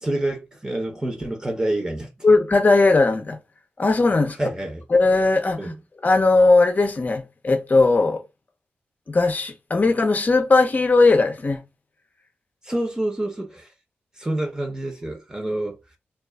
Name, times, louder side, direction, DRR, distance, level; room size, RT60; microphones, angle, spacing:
voice 1, 0.0-2.1 4.4-4.8 5.6-5.7 12.6-13.7 14.2-15.8, right 1 dB, 15° right, 0.8 m, -27 dB
voice 2, 2.2-3.4 3.8-4.4 4.9-5.6 6.0-8.2 9.1-11.6, left 3 dB, 40° left, 0.6 m, -18 dB
2.4 x 2.4 x 2.2 m
cardioid pair, 55°, 4 cm